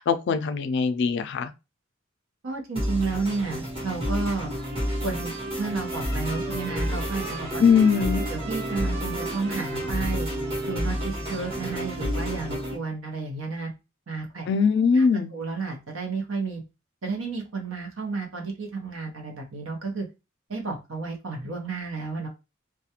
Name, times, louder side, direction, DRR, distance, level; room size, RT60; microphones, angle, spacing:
voice 1, 0.0-1.5 7.6-8.2 14.5-15.3, left 5 dB, 60° left, 0.3 m, -21 dB
voice 2, 2.4-4.5 5.0-5.3 5.6-7.6 8.1-10.3 10.7-13.7 14.1-14.5 14.9-15.0 15.3-16.6 17.0-20.1 20.5-22.3, right 4 dB, 75° right, 0.8 m, -32 dB
sound 1, 2.8-12.8, equal, 25° right, 1.0 m, -30 dB
Trumpet, 4.6-12.2, right 7 dB, 50° right, 0.4 m, -43 dB
sound 2, 5.9-11.9, left 2 dB, 15° left, 0.6 m, -42 dB
2.3 x 2.2 x 2.8 m
head